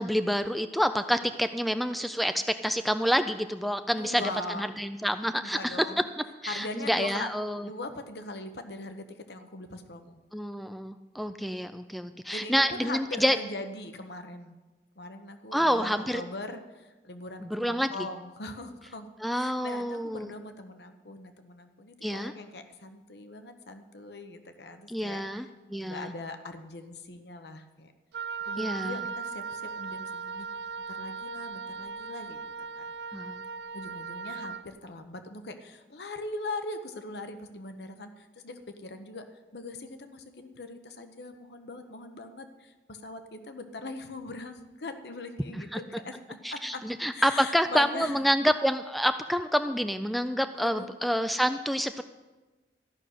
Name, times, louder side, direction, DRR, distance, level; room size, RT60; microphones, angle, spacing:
voice 1, 0.0-4.2 4.5-5.9 6.4-7.7 10.3-13.4 15.5-16.2 17.4-17.9 19.2-20.3 22.0-22.3 24.9-26.1 28.6-29.0 33.1-33.4 45.5-45.8 46.4-52.0, equal, ahead, 9 dB, 0.3 m, -28 dB
voice 2, 3.9-4.7 5.3-6.1 6.5-7.3 7.6-10.2 12.3-14.6 15.0-27.9 28.4-30.5 30.9-32.4 32.8-32.9 33.7-39.2 39.5-46.8 47.1-48.2 50.5-50.9, left 2 dB, 70° left, 8 dB, 0.9 m, -41 dB
Wind instrument woodwind instrument, 28.1-34.7, right 5 dB, 70° right, 0.4 m, -38 dB
13.5 x 6.3 x 9.2 m, 1.2 s
head